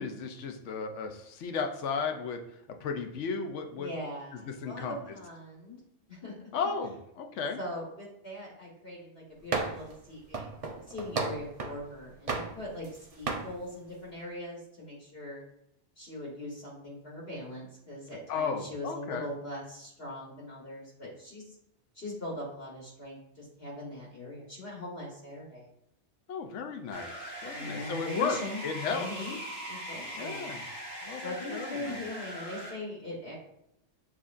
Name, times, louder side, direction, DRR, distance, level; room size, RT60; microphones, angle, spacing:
voice 1, 0.0-2.4 2.8-3.9 4.4-5.0 6.5-7.6 18.3-19.3 26.3-28.4 28.6-29.1 30.1-30.7 31.0-32.0, left 5 dB, 80° left, 5 dB, 1.0 m, -34 dB
voice 2, 3.8-5.8 6.1-6.3 7.6-10.5 10.9-12.9 13.1-15.4 16.0-21.5 21.9-25.7 27.5-28.6 28.9-29.4 29.7-30.5 31.2-33.3, left 1 dB, 55° left, -4 dB, 1.4 m, -41 dB
sound 1, 9.5-9.9 10.3-11.8 12.3-13.0 13.3-13.5, right 3 dB, 45° right, 0.5 m, -33 dB
sound 2, 26.9-32.7, equal, 30° right, 1.4 m, -41 dB
7.4 x 2.7 x 2.4 m, 0.77 s
omnidirectional pair, 1.2 m